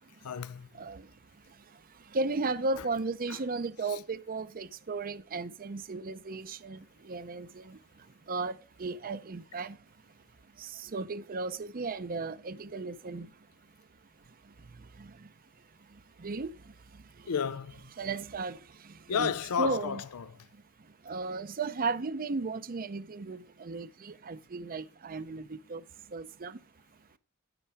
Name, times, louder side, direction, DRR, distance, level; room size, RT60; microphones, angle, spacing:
voice 1, 0.2-0.7 2.8-2.9 3.3-3.4 3.9-4.0 17.3-17.8 19.1-20.4, left 7 dB, 85° left, 0.5 m, -32 dB
voice 2, 2.1-6.8 7.1-7.5 8.3-8.5 8.8-9.8 10.9-13.3 16.2-16.5 18.0-18.6 19.1-19.3 19.6-20.0 21.1-25.8 26.1-26.5, right 3 dB, 40° right, 0.6 m, -34 dB
9.9 x 9.4 x 3.5 m
head